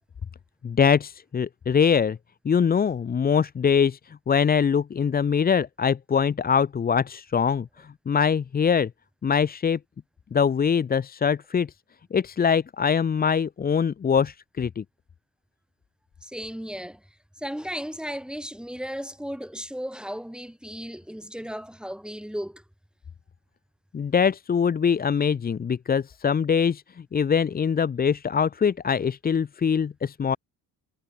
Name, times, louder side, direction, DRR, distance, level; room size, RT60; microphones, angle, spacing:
voice 1, 0.6-2.2 2.4-8.9 9.2-9.8 10.3-11.7 12.1-14.8 23.9-26.8 27.1-30.4, left 7 dB, 25° left, 0.5 m, -23 dB
voice 2, 16.2-17.0 17.4-22.6, equal, ahead, 7.4 m, -35 dB
cardioid pair, 80°, 40 cm